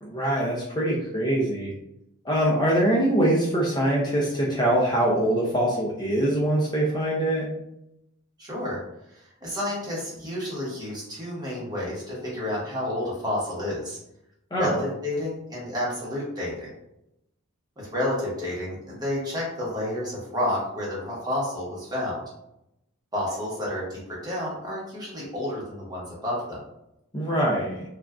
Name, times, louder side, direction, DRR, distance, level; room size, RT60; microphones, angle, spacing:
voice 1, 0.0-1.7 2.2-7.5 14.5-14.7 27.1-27.8, right 1 dB, 20° left, -4 dB, 0.5 m, -23 dB
voice 2, 8.4-8.8 9.1-14.0 14.6-16.7 17.8-22.2 23.1-26.6, left 1 dB, 20° right, -6 dB, 1.1 m, -30 dB
3.3 x 2.4 x 2.3 m, 0.83 s
head